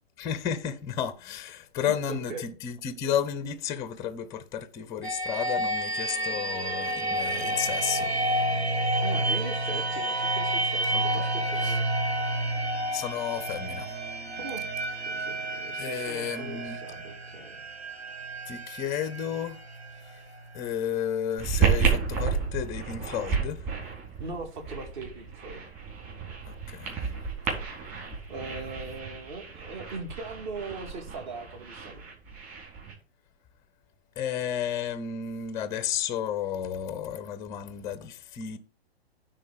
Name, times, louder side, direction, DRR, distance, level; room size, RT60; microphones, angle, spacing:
voice 1, 0.2-8.3 10.9-11.3 11.6-11.8 12.9-13.9 15.8-16.8 18.5-19.6 20.1-20.2 20.5-23.6 26.4-27.0 34.2-38.6, left 9 dB, 10° left, 0.5 m, -32 dB
voice 2, 1.9-2.4 9.0-11.9 14.4-14.7 15.0-17.6 24.2-25.6 28.3-32.0, right 3 dB, 45° right, 2.4 m, -40 dB
sound 1, 5.0-20.7, right 1 dB, 75° right, 2.2 m, -30 dB
sound 2, 21.4-32.9, right 6 dB, 25° right, 3.9 m, -31 dB
9.8 x 3.8 x 6.6 m
figure-of-eight pair, 120°, 32 cm